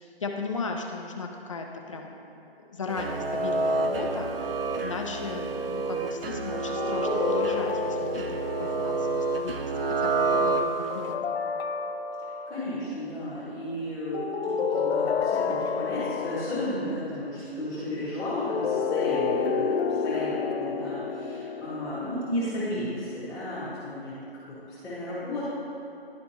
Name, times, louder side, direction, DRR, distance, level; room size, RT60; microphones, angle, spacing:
voice 1, 0.0-2.1 2.7-11.2, left 4 dB, 30° left, 2 dB, 0.5 m, -36 dB
sound 1, 2.9-11.1, right 3 dB, 65° right, 0.6 m, -28 dB
sound 2, 6.8-9.2 10.9-12.7 14.1-16.9 18.2-22.7, left 5 dB, 80° left, 0.5 m, -30 dB
voice 2, 12.5-24.2 24.5-25.4, left 1 dB, ahead, -20 dB, 0.8 m, -34 dB
11.5 x 4.2 x 2.8 m, 2.7 s
hypercardioid pair, 160°, 31 cm